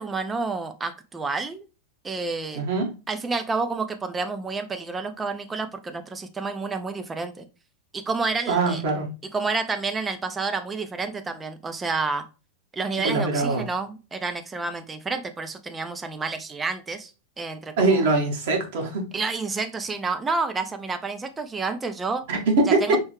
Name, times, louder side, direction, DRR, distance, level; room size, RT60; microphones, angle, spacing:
voice 1, 0.0-1.7 2.0-2.6 3.1-7.5 7.9-8.8 9.3-12.2 12.7-18.1 19.1-22.2 22.7-23.0, right 4 dB, 15° right, 8 dB, 0.6 m, -29 dB
voice 2, 2.5-2.9 8.5-9.1 13.0-13.6 17.8-19.0 22.3-23.0, right 3 dB, 55° right, 1 dB, 1.4 m, -22 dB
4.6 x 3.1 x 3.2 m, 0.30 s
figure-of-eight pair, 90°, 0 cm